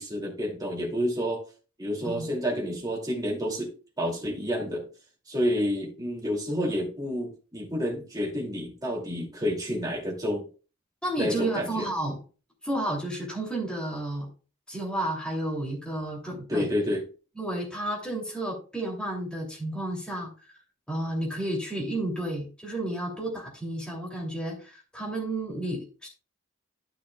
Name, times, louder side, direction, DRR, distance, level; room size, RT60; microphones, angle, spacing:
voice 1, 0.0-1.4 1.8-3.7 4.0-4.9 5.3-10.5 11.2-11.9 16.5-17.0, equal, 15° right, -2 dB, 2.5 m, -29 dB
voice 2, 11.0-12.2 12.6-14.3 14.7-16.7 17.4-20.3 20.9-26.1, right 1 dB, 5° left, -2 dB, 2.8 m, -31 dB
12.5 x 6.1 x 2.3 m, 0.36 s
head